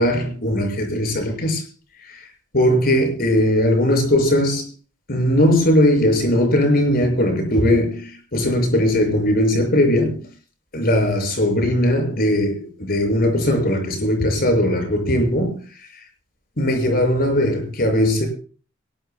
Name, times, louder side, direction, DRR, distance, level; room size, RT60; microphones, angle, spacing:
voice 1, 0.0-1.6 2.5-4.7 5.1-10.3 10.7-15.6 16.6-18.3, left 1 dB, 50° left, 6.4 m, -19 dB
23.0 x 19.5 x 2.2 m
head